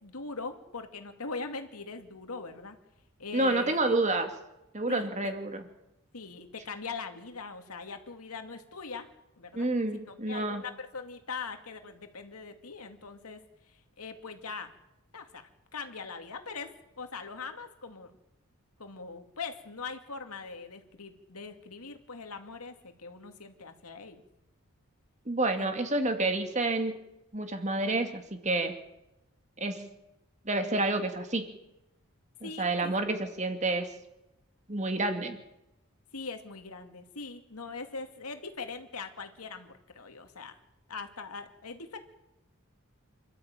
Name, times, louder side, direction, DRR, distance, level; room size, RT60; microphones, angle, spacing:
voice 1, 0.0-2.8 3.2-3.8 4.9-5.3 6.1-9.1 9.4-9.7 10.1-13.4 14.0-14.7 15.1-16.7 17.0-18.1 18.8-24.2 25.6-25.7 32.4-32.9 36.1-40.5 40.9-42.0, left 4 dB, 90° left, 6 dB, 2.5 m, -41 dB
voice 2, 3.3-4.3 4.7-5.6 9.5-10.6 25.3-27.0 27.3-28.8 29.6-29.9 30.5-31.6 32.4-33.9 34.7-35.4, right 2 dB, 30° right, 6 dB, 2.2 m, -29 dB
26.5 x 13.0 x 9.0 m, 0.93 s
head